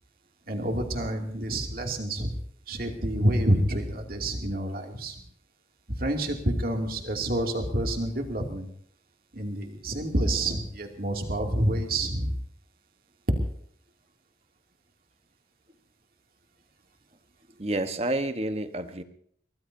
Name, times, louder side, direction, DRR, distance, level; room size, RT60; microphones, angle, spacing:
voice 1, 0.5-2.4 2.7-5.1 5.9-8.7 9.3-12.3, right 1 dB, 55° right, 3 dB, 2.7 m, -28 dB
voice 2, 17.5-19.0, right 1 dB, 35° right, 9 dB, 1.2 m, -29 dB
23.5 x 18.5 x 2.8 m, 0.64 s
head